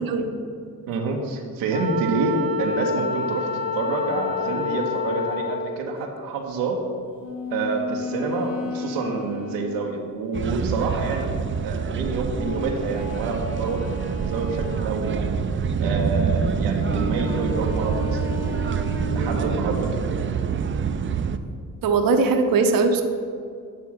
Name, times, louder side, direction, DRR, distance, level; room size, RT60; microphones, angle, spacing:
voice 1, 0.9-6.9 7.5-11.3 11.6-15.3 15.8-18.4 19.1-20.1, right 3 dB, 90° right, 1 dB, 0.8 m, -28 dB
Wind instrument woodwind instrument, 1.7-5.8, left 3 dB, 15° right, 0.8 m, -27 dB
sound 1, 7.2-10.7 12.3-15.2 16.8-20.1, left 2 dB, 35° left, 1.5 m, -34 dB
sound 2, 10.3-21.4, right 6 dB, 30° right, 0.4 m, -26 dB
voice 2, 21.8-23.0, right 4 dB, 55° right, 6 dB, 0.7 m, -20 dB
8.5 x 3.5 x 6.1 m, 2.3 s
supercardioid pair, 50°, 41 cm